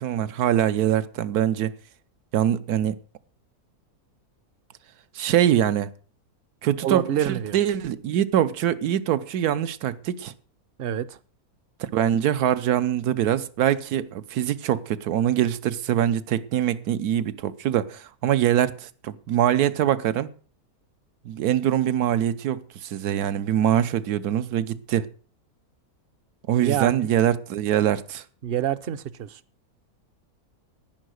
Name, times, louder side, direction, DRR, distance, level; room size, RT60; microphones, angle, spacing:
voice 1, 0.0-1.7 2.3-2.9 5.1-5.9 6.6-10.3 11.9-20.3 21.2-25.1 26.5-28.2, right 11 dB, 85° right, 1.3 m, -23 dB
voice 2, 6.8-7.6 10.8-11.2 26.6-27.1 28.4-29.4, right 10 dB, 55° right, 0.7 m, -27 dB
10.5 x 10.0 x 6.4 m
omnidirectional pair, 1.6 m